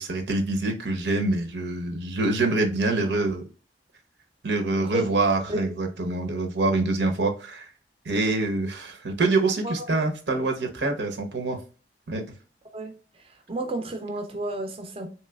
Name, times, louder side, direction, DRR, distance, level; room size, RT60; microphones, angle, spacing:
voice 1, 0.0-3.4 4.4-7.7 8.0-11.6 12.1-12.2, right 2 dB, 85° right, 0.7 m, -25 dB
voice 2, 13.2-15.1, right 1 dB, 30° right, 0.4 m, -31 dB
3.1 x 3.1 x 2.2 m
head